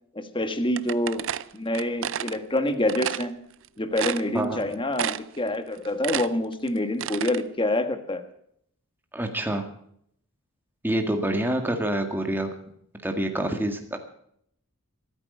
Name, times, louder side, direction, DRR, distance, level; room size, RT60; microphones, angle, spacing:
voice 1, 0.1-1.3 1.5-3.4 3.8-8.2, left 1 dB, 20° left, 9 dB, 1.4 m, -27 dB
sound 1, 0.8-2.4 2.9-3.3 3.6-3.7 4.0-4.6 5.0-5.4 5.7-7.4, right 9 dB, 60° right, 0.5 m, -30 dB
voice 2, 9.1-9.7 10.8-12.5 13.0-14.0, right 1 dB, 10° right, 4 dB, 1.8 m, -26 dB
24.5 x 9.1 x 5.5 m, 0.68 s
head